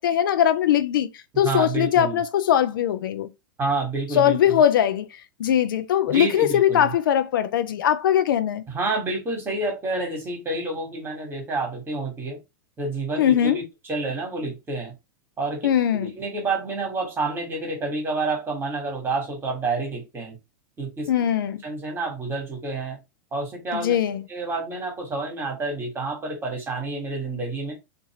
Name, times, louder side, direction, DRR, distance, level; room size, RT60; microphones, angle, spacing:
voice 1, 0.0-3.3 4.1-8.6 13.2-13.6 15.6-16.1 21.1-21.6 23.7-24.2, left 10 dB, 80° left, 0.4 m, -21 dB
voice 2, 1.4-2.2 3.6-4.6 6.1-6.9 8.7-12.4 12.8-14.9 15.4-15.7 15.9-20.3 20.8-21.1 21.6-23.0 23.3-24.0 24.3-27.7, right 3 dB, 20° right, 1.4 m, -29 dB
2.6 x 2.6 x 2.9 m
hypercardioid pair, 115°, 11 cm